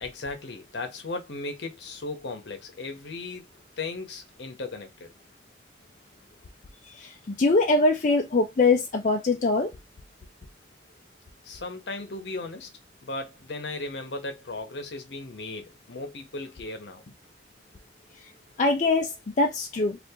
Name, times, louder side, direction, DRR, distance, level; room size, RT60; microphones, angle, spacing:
voice 1, 0.0-3.5 3.8-5.1 11.4-12.7 13.0-17.1, left 3 dB, 70° left, 0.8 m, -36 dB
voice 2, 6.9-9.7 18.6-20.0, left 3 dB, 40° left, 0.4 m, -23 dB
2.8 x 2.5 x 3.5 m
head